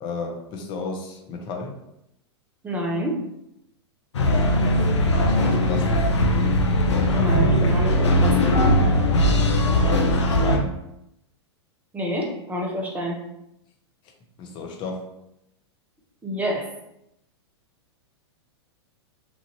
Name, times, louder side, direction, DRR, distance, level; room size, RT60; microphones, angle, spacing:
voice 1, 0.0-1.7 5.2-6.1 9.6-10.8 14.4-15.1, left 4 dB, 35° left, 3 dB, 0.6 m, -33 dB
voice 2, 2.6-3.2 7.1-8.6 11.9-13.2 16.2-16.7, equal, 10° right, 0 dB, 0.6 m, -28 dB
sound 1, 4.1-10.6, left 1 dB, 80° left, 0.5 m, -19 dB
3.1 x 2.5 x 2.6 m, 0.83 s
hypercardioid pair, 105°, 14 cm